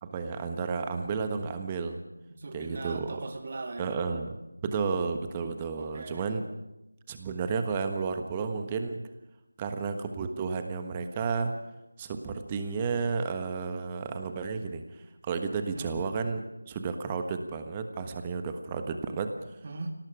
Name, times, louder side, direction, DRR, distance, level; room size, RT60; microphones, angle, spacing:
voice 1, 0.0-2.0 2.5-3.1 3.8-4.3 4.6-6.4 7.1-9.0 9.6-11.5 12.0-19.3, right 5 dB, 15° right, 7 dB, 1.3 m, -32 dB
voice 2, 2.3-4.0 5.8-6.3 15.7-15.9 19.6-19.9, right 3 dB, 35° right, 6 dB, 2.1 m, -39 dB
25.5 x 18.0 x 6.1 m, 0.96 s
figure-of-eight pair, 165°, 0 cm